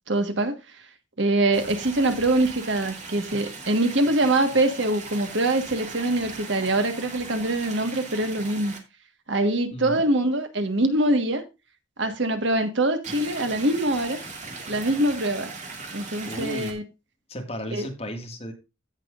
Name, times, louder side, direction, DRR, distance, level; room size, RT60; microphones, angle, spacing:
voice 1, 0.1-0.6 1.2-8.7 9.3-11.4 12.0-14.2 14.7-15.5 15.9-16.8 17.7-17.9, right 1 dB, 60° right, 1.6 m, -24 dB
sound 1, 1.5-8.8 13.0-16.7, right 3 dB, 35° right, 2.2 m, -39 dB
voice 2, 16.2-16.8 17.3-18.5, equal, 30° left, 2.0 m, -34 dB
16.5 x 6.2 x 2.5 m
head